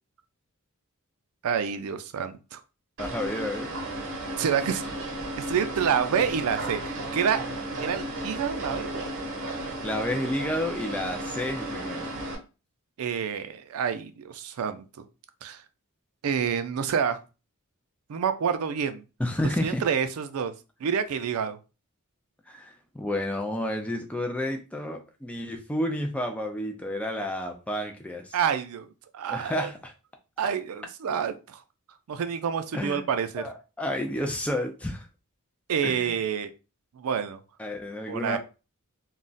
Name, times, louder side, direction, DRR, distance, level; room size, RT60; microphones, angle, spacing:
voice 1, 1.4-2.6 4.4-4.8 5.4-7.5 7.8-9.0 13.0-14.8 15.4-15.6 16.2-17.2 18.1-19.0 19.6-20.5 20.8-21.6 28.3-28.9 29.1-29.7 30.4-31.6 32.1-33.4 35.7-36.5 36.9-37.4 38.1-38.4, right 7 dB, 75° right, 9 dB, 0.4 m, -28 dB
voice 2, 3.0-3.7 9.8-12.1 19.2-19.8 22.5-28.4 29.3-29.9 32.7-33.0 33.4-35.1 35.8-36.1 37.6-38.4, left 1 dB, 5° left, 3 dB, 0.3 m, -31 dB
sound 1, 3.0-12.3, right 1 dB, 55° right, 0.8 m, -34 dB
2.3 x 2.0 x 3.8 m, 0.31 s
head